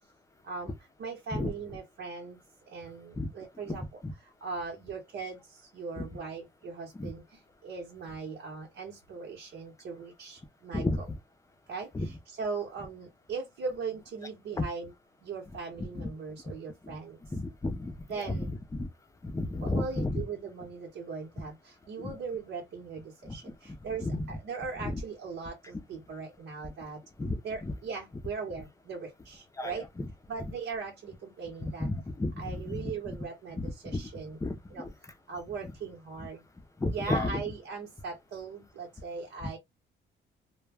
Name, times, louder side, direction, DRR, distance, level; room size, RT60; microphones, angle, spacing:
voice 1, 0.4-2.4 2.7-3.8 4.2-11.1 11.7-14.9 15.2-17.2 18.1-18.5 19.6-27.0 27.4-29.9 30.3-31.9 32.4-34.4 34.7-34.9 35.3-36.4 36.9-39.6, right 5 dB, 75° right, 1.0 m, -39 dB
voice 2, 3.7-4.1 6.0-6.1 6.9-7.1 10.7-11.0 11.9-12.1 14.6-14.7 15.9-16.1 16.8-17.0 17.3-18.5 18.7-18.9 19.2-20.2 22.0-22.1 23.2-24.3 24.8-25.0 27.2-27.4 27.6-27.7 29.6-30.1 31.6-32.9 33.6-34.0 34.4-34.9 36.2-36.3 36.8-37.4 39.4-39.5, left 2 dB, 15° left, 0.5 m, -33 dB
2.2 x 2.2 x 3.3 m
cardioid pair, 90°, 20 cm